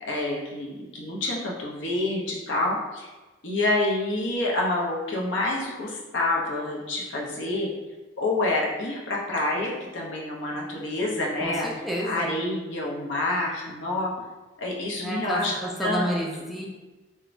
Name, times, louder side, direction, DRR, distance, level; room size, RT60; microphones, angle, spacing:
voice 1, 0.1-3.1 3.4-7.7 8.2-11.7 12.0-14.1 14.6-16.1, left 2 dB, 70° left, -2 dB, 0.6 m, -27 dB
voice 2, 11.8-12.3 15.0-16.7, equal, ahead, -3 dB, 0.3 m, -29 dB
3.0 x 2.2 x 2.5 m, 1.2 s
head